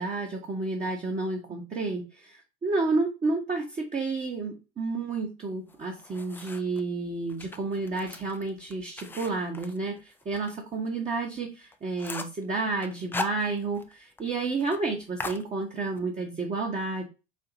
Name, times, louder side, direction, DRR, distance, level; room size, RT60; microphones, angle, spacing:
voice 1, 0.0-17.0, right 3 dB, 20° right, 1 dB, 0.9 m, -31 dB
sound 1, 5.7-6.8 7.3-10.5 10.9-11.0 11.4-11.5 11.7-12.4 12.8-13.9 14.2-14.3 14.6-14.8 15.2-16.0, left 3 dB, 5° left, 0.3 m, -38 dB
4.3 x 2.8 x 3.8 m, 0.30 s
figure-of-eight pair, 80°, 35 cm